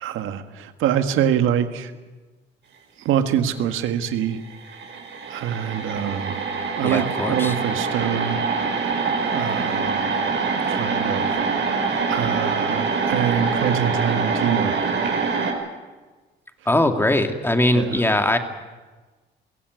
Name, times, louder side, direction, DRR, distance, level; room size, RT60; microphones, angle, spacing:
voice 1, 0.0-1.9 3.0-4.4 5.3-6.4 6.8-8.4 9.3-10.0 10.7-11.3 12.1-14.8 17.7-18.0, right 9 dB, 90° right, 9 dB, 1.7 m, -24 dB
sound 1, 4.2-4.3 4.5-15.5, right 4 dB, 65° right, 5.5 m, -24 dB
voice 2, 6.8-7.6 16.7-18.4, left 1 dB, 10° left, 6 dB, 2.5 m, -20 dB
22.5 x 16.5 x 9.6 m, 1.3 s
cardioid pair, 90°, 20 cm